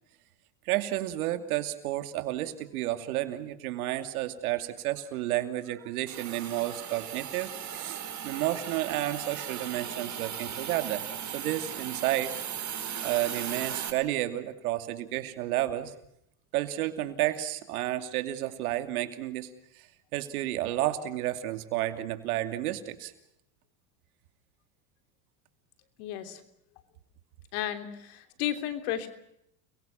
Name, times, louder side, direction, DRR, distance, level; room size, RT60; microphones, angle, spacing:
voice 1, 0.7-11.1 11.3-12.4 13.0-15.9 16.5-19.9 20.1-23.1, right 14 dB, 85° right, 9 dB, 2.7 m, -31 dB
Hiss, 6.1-13.9, right 9 dB, 40° right, 4.4 m, -37 dB
voice 2, 26.0-26.4 27.5-29.1, left 11 dB, 75° left, 9 dB, 3.4 m, -33 dB
30.0 x 22.5 x 5.8 m, 0.79 s
supercardioid pair, 95°, 43 cm